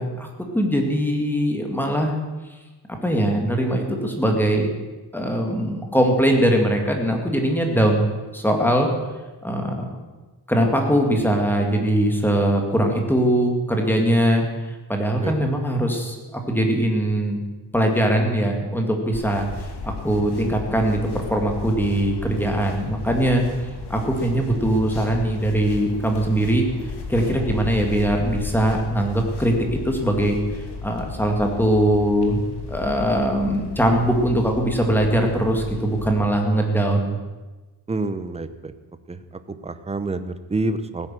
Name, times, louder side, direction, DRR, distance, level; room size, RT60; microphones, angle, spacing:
voice 1, 0.0-2.2 2.9-4.7 5.1-8.0 8.3-8.9 9.4-9.9 10.5-14.4 14.9-17.4 17.7-19.5 19.8-23.5 23.9-26.7 27.1-30.4 30.8-32.4 32.7-37.2, right 1 dB, 5° left, 2 dB, 2.1 m, -21 dB
sound 1, 19.1-36.1, left 3 dB, 65° left, 2.5 m, -35 dB
voice 2, 37.9-38.7 39.1-39.2 39.5-41.1, right 2 dB, 15° right, 10 dB, 0.8 m, -28 dB
16.5 x 9.7 x 7.6 m, 1.2 s
wide cardioid pair, 165°, 42 cm